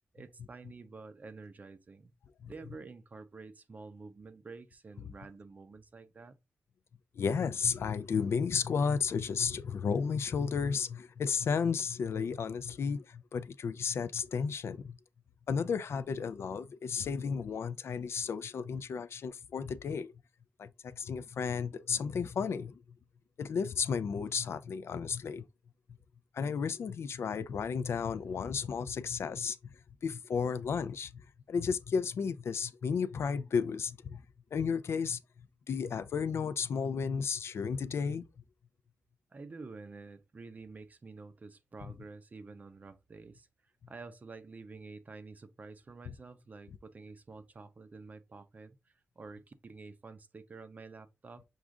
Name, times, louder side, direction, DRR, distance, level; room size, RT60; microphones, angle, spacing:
voice 1, 0.1-2.1 2.5-6.4 39.3-51.4, right 3 dB, 35° right, 0.5 m, -49 dB
voice 2, 7.2-15.0 15.5-20.1 20.6-22.8 23.4-25.4 26.3-29.6 30.0-31.1 31.5-34.2 34.5-35.2 35.7-38.2 46.1-46.2, left 6 dB, 65° left, 0.3 m, -33 dB
6.3 x 2.4 x 3.6 m
wide cardioid pair, 150°, 5 cm